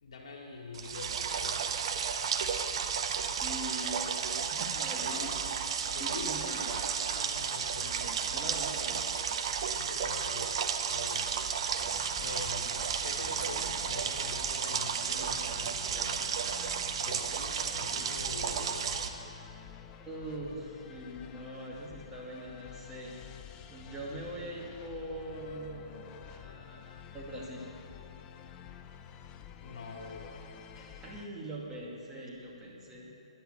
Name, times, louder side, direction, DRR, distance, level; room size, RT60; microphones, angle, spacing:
voice 1, 0.0-1.8 5.0-5.3 5.9-8.2 9.7-10.5 10.9-11.3 12.2-12.7 13.0-16.4 16.9-19.0 29.6-30.5 30.7-31.0, left 3 dB, 60° left, -1 dB, 2.6 m, -45 dB
sound 1, 0.7-19.1, right 7 dB, 50° right, 0.9 m, -33 dB
voice 2, 3.4-5.3 6.0-6.7 7.8-9.1 20.0-23.1 23.7-27.7 31.0-33.1, right 1 dB, 15° right, -5 dB, 2.3 m, -42 dB
sound 2, 11.8-31.3, left 9 dB, 20° left, 0.6 m, -50 dB
10.5 x 10.5 x 7.6 m, 2.8 s
figure-of-eight pair, 135°, 3 cm